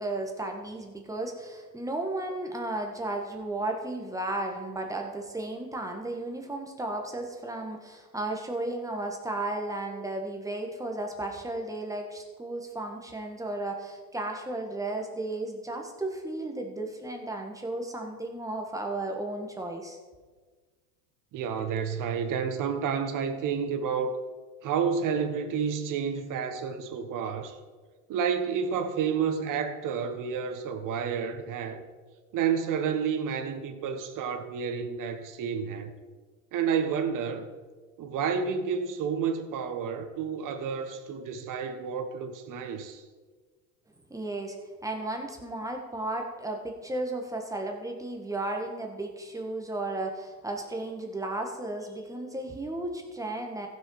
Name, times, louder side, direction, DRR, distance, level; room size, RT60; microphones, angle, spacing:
voice 1, 0.0-20.0 44.1-44.6 44.8-53.7, right 2 dB, 5° right, 1.6 m, -34 dB
voice 2, 21.3-24.2 24.6-27.6 28.1-31.8 32.3-35.9 36.5-37.5 38.0-43.0, right 6 dB, 40° right, 1.3 m, -30 dB
15.0 x 6.4 x 4.9 m
supercardioid pair, 110°, 47 cm